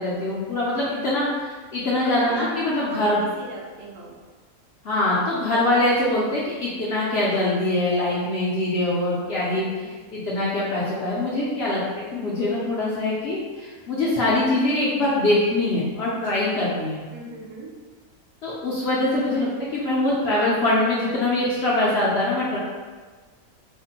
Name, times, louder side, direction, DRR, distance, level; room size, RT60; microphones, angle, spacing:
voice 1, 0.0-3.2 4.8-9.8 10.1-17.0 18.4-22.6, left 1 dB, 60° left, -7 dB, 0.7 m, -23 dB
voice 2, 2.3-4.1 9.8-9.9 16.1-16.2 17.1-17.7, right 2 dB, 80° right, -3 dB, 1.1 m, -37 dB
3.3 x 2.1 x 2.8 m, 1.4 s
omnidirectional pair, 1.5 m